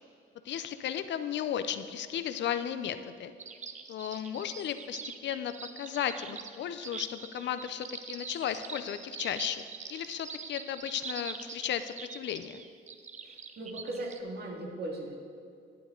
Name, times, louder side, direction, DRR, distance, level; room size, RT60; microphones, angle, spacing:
voice 1, 0.4-3.3 3.9-9.6 9.9-12.6, left 9 dB, 65° left, 11 dB, 0.5 m, -35 dB
sound 1, 3.4-14.2, right 6 dB, 35° right, 0.7 m, -44 dB
voice 2, 13.2-15.1, right 2 dB, 55° right, 0 dB, 1.9 m, -38 dB
11.5 x 7.7 x 3.7 m, 2.3 s
cardioid pair, 90°, 20 cm